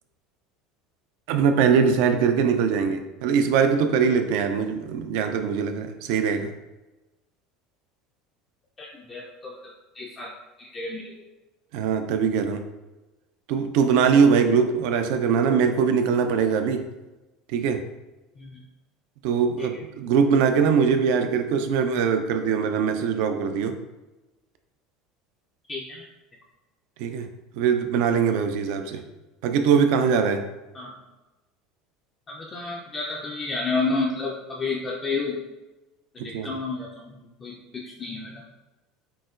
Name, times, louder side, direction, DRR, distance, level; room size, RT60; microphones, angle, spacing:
voice 1, 1.3-6.5 11.7-12.6 13.5-16.9 17.5-17.8 19.2-23.8 27.0-27.3 27.5-29.0 29.4-30.4 36.2-36.5, right 6 dB, 60° right, 7 dB, 0.3 m, -22 dB
voice 2, 8.8-11.2 18.4-18.6 19.6-19.7 25.7-26.1 30.7-30.9 32.3-35.4 36.1-38.4, left 3 dB, 30° left, -2 dB, 0.4 m, -31 dB
4.6 x 2.0 x 2.4 m, 1.1 s
figure-of-eight pair, 70°, 0 cm